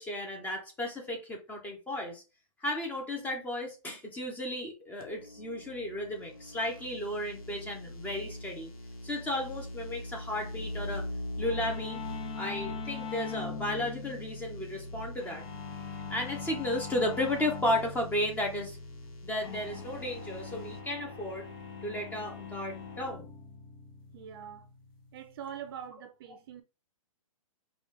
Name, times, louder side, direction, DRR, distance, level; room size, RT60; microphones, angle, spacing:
voice 1, 0.0-2.2 2.6-8.7 9.0-11.1 11.4-12.0 12.3-15.4 16.1-18.8 19.2-21.5 21.8-23.3, left 1 dB, 10° left, 0.8 m, -34 dB
sound 1, 5.0-20.8, left 1 dB, 75° left, 1.3 m, -43 dB
sound 2, 11.4-25.9, left 6 dB, 40° left, 0.9 m, -43 dB
voice 2, 24.1-24.7 25.1-26.6, right 9 dB, 45° right, 0.6 m, -43 dB
5.0 x 2.5 x 3.3 m
hypercardioid pair, 145°, 18 cm